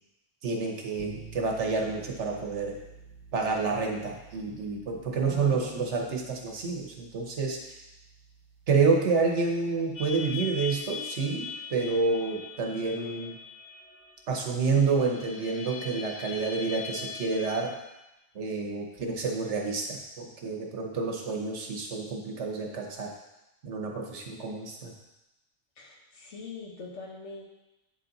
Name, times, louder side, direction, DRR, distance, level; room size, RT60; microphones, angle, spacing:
voice 1, 0.4-2.7 3.3-7.8 8.7-13.4 14.3-17.7 18.3-23.1 23.6-24.9, right 4 dB, 80° right, 1 dB, 1.4 m, -29 dB
sound 1, 1.0-10.8, right 5 dB, 30° right, 0.5 m, -51 dB
voice 2, 5.2-5.8 25.8-27.4, left 3 dB, 90° left, -1 dB, 1.6 m, -43 dB
sound 2, 9.9-17.6, left 5 dB, 75° left, 1.7 m, -41 dB
9.1 x 4.2 x 4.0 m, 0.96 s
omnidirectional pair, 1.2 m